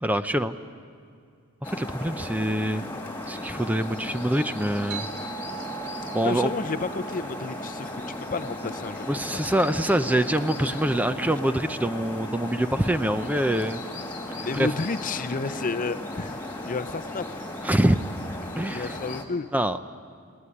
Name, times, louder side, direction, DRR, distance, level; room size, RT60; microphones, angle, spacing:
voice 1, 0.0-0.5 1.7-2.8 3.3-5.1 6.1-6.5 9.1-13.8 14.4-14.7 17.6-18.0 18.6-19.0 19.5-19.8, right 1 dB, 10° right, 10 dB, 0.5 m, -25 dB
sound 1, 1.6-19.2, left 1 dB, 10° left, 2.2 m, -36 dB
sound 2, 4.9-9.9, right 10 dB, 80° right, 3.5 m, -42 dB
voice 2, 6.2-9.1 14.4-16.4 16.7-17.4 18.7-19.5, left 4 dB, 40° left, 13 dB, 0.6 m, -31 dB
19.0 x 19.0 x 9.9 m, 2.3 s
head